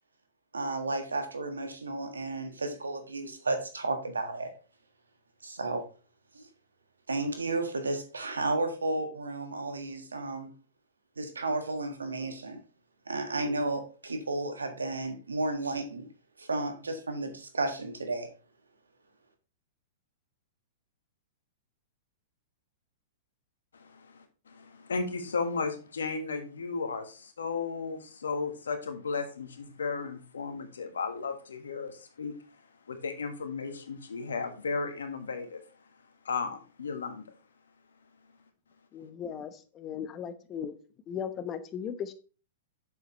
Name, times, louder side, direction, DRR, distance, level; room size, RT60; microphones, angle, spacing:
voice 1, 0.5-4.5 5.4-5.8 6.3-6.5 7.1-10.5 11.2-12.6 13.1-16.0 16.4-18.3, right 2 dB, 90° right, 1.6 m, -33 dB
voice 2, 23.7-32.3 32.9-35.6 36.2-37.2, left 4 dB, 80° left, 1.5 m, -35 dB
voice 3, 38.9-40.7 41.1-42.1, left 8 dB, 30° left, 1.0 m, -37 dB
7.9 x 7.0 x 3.1 m
hypercardioid pair, 110°, 0 cm